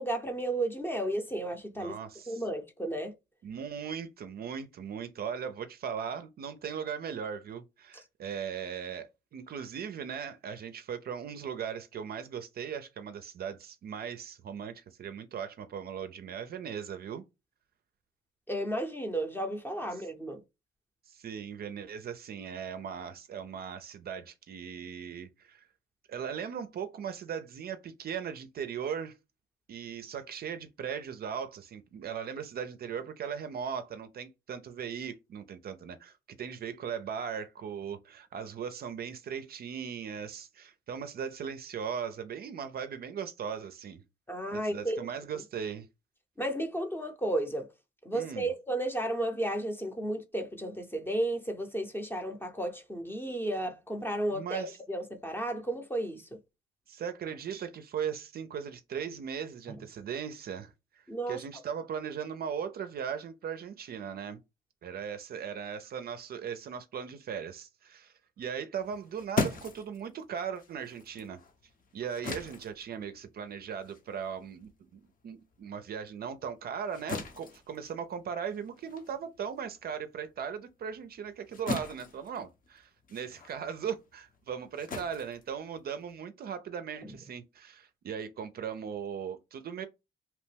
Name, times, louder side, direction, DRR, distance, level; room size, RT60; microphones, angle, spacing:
voice 1, 0.0-1.9 2.3-3.1 18.5-20.4 44.3-45.1 46.4-47.7 48.0-56.4 59.7-59.8 61.1-61.4 87.0-87.2, right 1 dB, 10° left, 0.7 m, -33 dB
voice 2, 1.8-2.4 3.4-17.2 21.1-25.7 26.1-29.2 29.7-44.0 44.5-45.9 48.1-48.5 54.3-54.8 56.9-64.4 64.8-71.4 71.9-89.9, right 7 dB, 50° right, 0.4 m, -38 dB
sound 1, 68.8-75.6 76.0-86.2, left 3 dB, 45° left, 0.7 m, -40 dB
2.8 x 2.1 x 3.2 m
cardioid pair, 90°, 20 cm